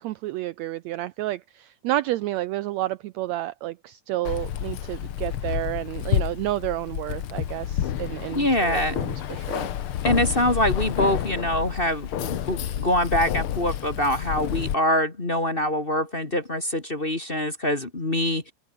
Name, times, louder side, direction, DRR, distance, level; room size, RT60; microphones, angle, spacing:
voice 1, 0.0-9.7, right 16 dB, 80° right, 1.6 m, -30 dB
Keys jangling, 4.2-14.7, left 10 dB, 55° left, 1.7 m, -29 dB
voice 2, 8.3-9.0 10.0-18.5, left 1 dB, 20° left, 1.9 m, -24 dB
open air
omnidirectional pair, 3.6 m